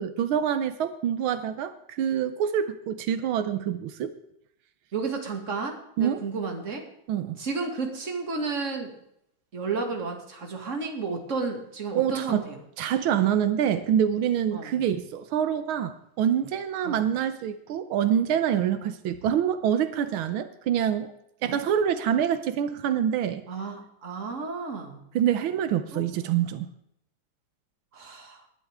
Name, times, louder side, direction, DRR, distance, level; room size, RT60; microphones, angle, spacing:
voice 1, 0.0-4.1 6.0-6.2 7.1-7.4 12.0-12.5 12.8-21.1 21.4-23.4 25.2-26.7, right 9 dB, 85° right, 11 dB, 1.6 m, -26 dB
voice 2, 4.9-6.8 7.4-8.9 9.5-12.6 14.5-14.8 16.8-17.1 21.4-21.6 23.5-25.0 25.9-26.1 27.9-28.5, right 4 dB, 40° right, 3 dB, 2.4 m, -32 dB
19.5 x 11.5 x 3.6 m, 0.75 s
omnidirectional pair, 2.2 m